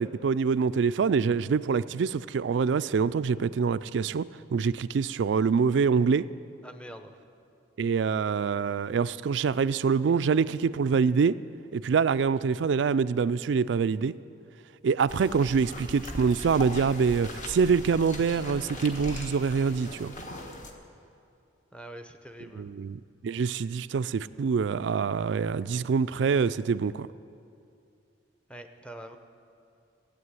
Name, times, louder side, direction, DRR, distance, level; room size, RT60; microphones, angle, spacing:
voice 1, 0.0-6.3 7.8-11.4 11.7-14.1 14.8-20.1 22.5-27.1, right 5 dB, 65° right, 0.3 m, -25 dB
voice 2, 6.6-7.1 21.7-22.7 28.5-29.2, right 1 dB, 5° left, 0.7 m, -44 dB
sound 1, 15.1-20.7, left 1 dB, 40° left, 1.3 m, -40 dB
16.0 x 8.3 x 9.6 m
head